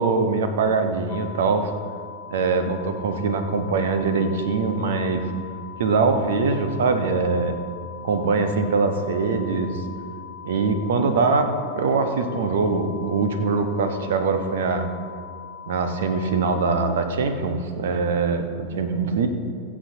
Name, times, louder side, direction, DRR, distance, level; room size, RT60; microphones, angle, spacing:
voice 1, 0.0-1.7 2.3-5.2 5.8-7.5 8.0-9.8 10.4-14.9 15.7-19.3, right 4 dB, 60° right, 8 dB, 1.1 m, -23 dB
sound 1, 1.1-17.0, left 8 dB, 35° left, 0.5 m, -41 dB
22.0 x 8.4 x 2.9 m, 2.2 s
figure-of-eight pair, 90°, 0 cm